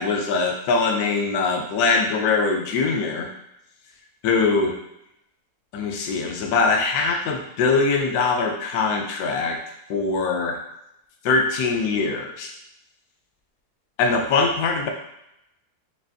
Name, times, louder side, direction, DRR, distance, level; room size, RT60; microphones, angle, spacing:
voice 1, 0.0-3.3 4.2-4.8 5.7-9.6 9.9-10.6 11.2-12.5 14.0-14.9, left 4 dB, 75° left, 3 dB, 1.1 m, -22 dB
5.4 x 2.5 x 2.7 m, 0.82 s
omnidirectional pair, 1.7 m